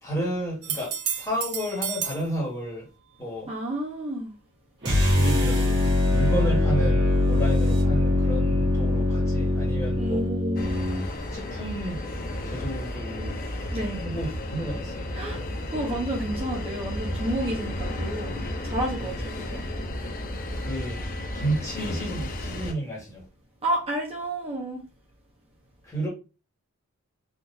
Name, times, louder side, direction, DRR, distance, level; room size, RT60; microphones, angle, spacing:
voice 1, 0.0-2.8 3.2-3.5 5.1-10.2 11.3-12.0 12.4-13.4 14.0-15.1 19.0-19.2 20.6-21.0 21.3-23.2 25.8-26.1, right 1 dB, 15° left, 1.5 m, -32 dB
sound 1, 0.6-2.3 5.9-6.0, right 9 dB, 85° right, 0.5 m, -31 dB
voice 2, 3.5-4.3 10.0-10.7 13.7-14.1 15.1-15.4 15.7-19.7 23.6-24.8, right 1 dB, 30° right, 0.7 m, -30 dB
sound 2, 4.8-11.1, left 2 dB, 55° right, 1.5 m, -22 dB
sound 3, 10.6-22.7, left 1 dB, 40° left, 0.5 m, -33 dB
3.6 x 2.5 x 2.6 m
head